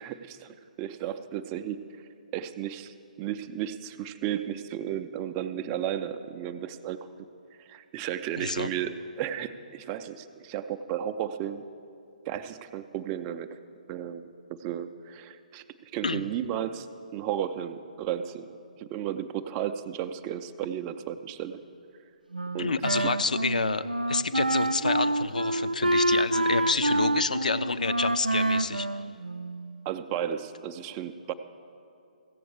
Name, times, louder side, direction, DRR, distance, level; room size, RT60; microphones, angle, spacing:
voice 1, 0.0-1.8 2.3-7.0 7.6-11.6 12.3-13.6 13.9-15.6 15.9-16.9 17.1-18.5 18.8-21.6 22.5-23.1 29.9-31.3, right 10 dB, 20° right, 10 dB, 0.4 m, -34 dB
voice 2, 8.4-8.7 16.0-16.2 22.6-28.9, left 4 dB, 65° left, 13 dB, 0.5 m, -29 dB
Wind instrument woodwind instrument, 22.3-29.8, right 1 dB, 85° right, 0.4 m, -27 dB
15.0 x 7.6 x 7.0 m, 2.6 s
figure-of-eight pair, 130°, 4 cm